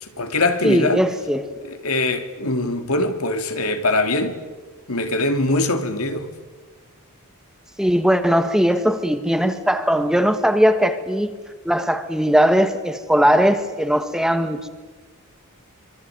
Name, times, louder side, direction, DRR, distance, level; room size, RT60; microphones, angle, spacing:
voice 1, 0.0-1.0 1.6-4.4 4.9-6.3, left 2 dB, 85° left, 3.0 m, -22 dB
voice 2, 0.6-1.5 2.6-2.7 7.8-11.3 11.7-14.7, equal, 5° right, 1.6 m, -19 dB
26.0 x 24.5 x 9.4 m
head